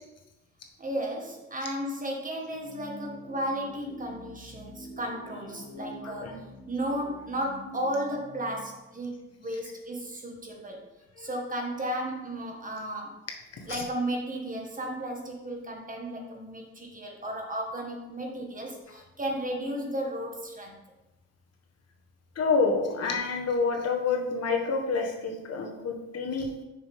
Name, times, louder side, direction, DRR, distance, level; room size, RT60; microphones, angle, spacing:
voice 1, 0.8-10.9 11.2-13.1 13.7-20.8, right 1 dB, 25° right, 1 dB, 1.6 m, -34 dB
sound 1, 2.5-9.7, equal, 85° left, 1.2 m, -46 dB
voice 2, 6.0-6.4 11.2-11.3 13.6-13.8 22.3-26.5, left 4 dB, 55° left, 2 dB, 1.4 m, -28 dB
6.7 x 6.1 x 3.6 m, 0.99 s
cardioid pair, 90°, 30 cm